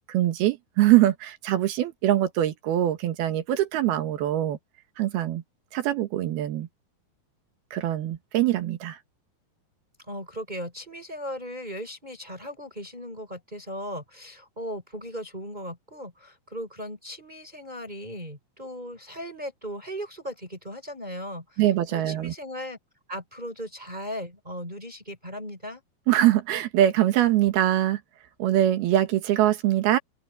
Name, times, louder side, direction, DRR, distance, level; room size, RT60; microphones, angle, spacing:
voice 1, 0.0-4.6 5.0-5.4 5.7-6.7 7.7-9.0 21.6-22.3 26.1-28.0 28.4-30.0, right 13 dB, 85° right, 3.5 m, -23 dB
voice 2, 10.1-21.6 21.9-22.8 23.1-25.8, equal, 10° right, 6.3 m, -37 dB
omnidirectional pair, 4.3 m